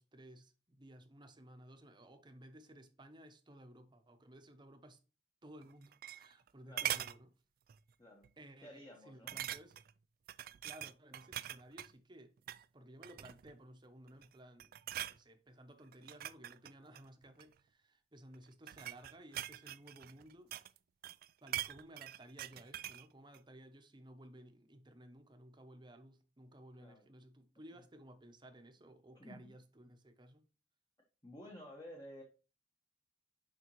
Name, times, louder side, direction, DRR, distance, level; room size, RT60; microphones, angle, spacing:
voice 1, 0.0-5.0 5.4-7.3 8.4-9.8 10.6-12.3 12.7-20.5 21.4-30.4, right 1 dB, 25° right, 0.9 m, -57 dB
sound 1, 5.6-6.5 6.8-7.2 7.7-7.9 8.2-8.3 9.3-9.9 10.3-11.9 12.4-12.6 13.0-13.6 14.1-14.3 14.6-15.2 15.9-17.5 18.3-20.8 21.0-23.1 23.3-23.4, right 13 dB, 55° right, 0.3 m, -43 dB
voice 2, 8.0-8.3 8.6-9.4 26.8-27.1 27.7-27.8 29.1-29.5 31.2-32.2, equal, 25° left, 1.2 m, -53 dB
7.0 x 5.0 x 3.1 m
head